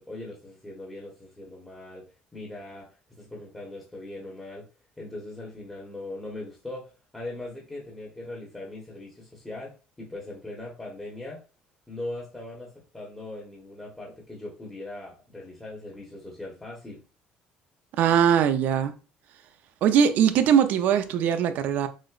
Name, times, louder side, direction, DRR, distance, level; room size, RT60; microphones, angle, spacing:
voice 1, 0.0-2.0 2.3-4.6 5.0-11.4 11.9-17.0, left 2 dB, 10° left, 1.0 m, -40 dB
voice 2, 18.0-19.0 19.8-21.9, right 8 dB, 65° right, 0.5 m, -21 dB
6.2 x 2.1 x 2.3 m
cardioid pair, 130°, 3 cm